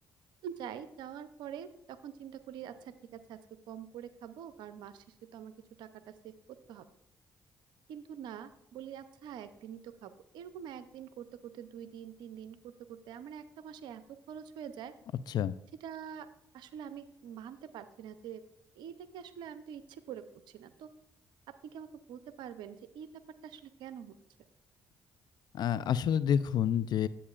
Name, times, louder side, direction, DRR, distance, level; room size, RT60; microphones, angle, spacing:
voice 1, 0.4-3.4 3.7-6.9 7.9-14.9 15.8-16.3 16.5-18.4 18.8-20.9 21.5-24.2, right 8 dB, 80° right, 12 dB, 0.6 m, -45 dB
voice 2, 25.5-27.1, left 9 dB, 65° left, 16 dB, 0.4 m, -28 dB
10.0 x 8.4 x 2.4 m, 0.82 s
supercardioid pair, 55°, 8 cm